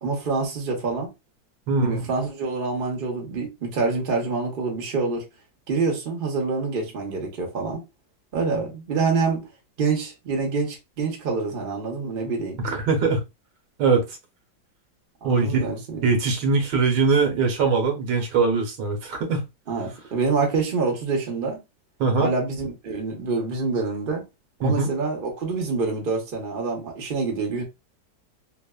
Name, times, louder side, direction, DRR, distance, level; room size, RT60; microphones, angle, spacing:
voice 1, 0.0-1.1 1.8-5.2 5.7-7.8 8.3-9.4 9.8-12.6 15.2-16.1 19.7-21.6 22.2-24.2 24.6-27.6, right 4 dB, 45° right, 0.7 m, -26 dB
voice 2, 1.7-2.0 12.6-13.2 13.8-14.2 15.2-15.7 16.0-19.5 22.0-22.3 24.6-24.9, right 4 dB, 70° right, 1.4 m, -22 dB
3.3 x 2.0 x 2.2 m
omnidirectional pair, 2.0 m